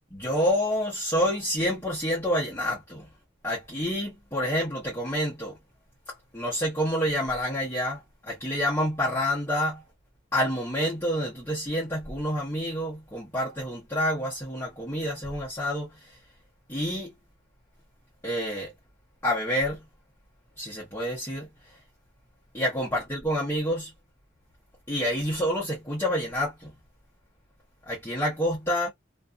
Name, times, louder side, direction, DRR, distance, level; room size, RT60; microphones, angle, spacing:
voice 1, 0.1-3.1 3.4-5.6 6.1-9.8 10.3-16.2 16.7-17.1 18.2-18.7 19.2-19.8 20.6-21.5 22.5-23.9 24.9-26.7 27.9-28.9, equal, 15° left, 0.9 m, -28 dB
2.5 x 2.5 x 2.2 m
head